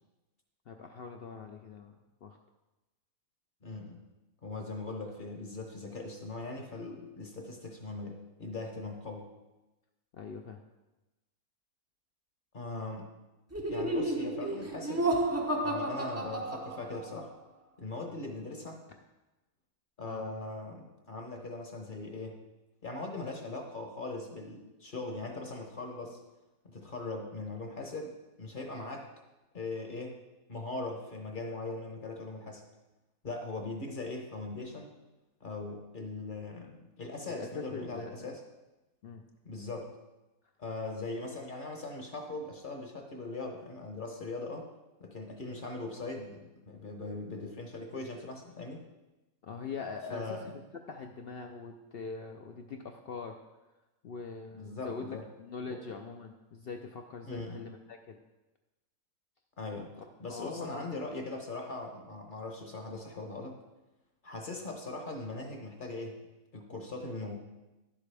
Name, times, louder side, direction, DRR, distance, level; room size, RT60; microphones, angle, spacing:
voice 1, 0.7-2.0 2.2-2.4 10.1-10.6 20.0-20.2 37.3-38.3 39.0-39.2 49.4-50.6 50.9-53.4 54.0-58.2 60.0-60.8, left 4 dB, 65° left, 4 dB, 0.6 m, -42 dB
voice 2, 3.6-4.0 4.4-9.3 12.5-13.1 13.7-15.1 15.6-17.3 17.8-18.8 20.0-22.4 22.8-26.2 26.6-29.1 29.5-30.2 30.5-32.6 33.2-34.9 35.4-38.4 39.4-39.9 40.6-44.7 45.0-48.9 50.1-50.4 54.5-55.3 55.7-55.8 57.2-57.6 59.6-59.9 60.2-63.6 64.2-66.2 66.5-67.4, left 2 dB, 40° left, 2 dB, 0.9 m, -40 dB
Laughter, 13.5-17.2, right 1 dB, 20° right, 0.4 m, -32 dB
11.0 x 7.5 x 3.3 m, 1.1 s
omnidirectional pair, 1.5 m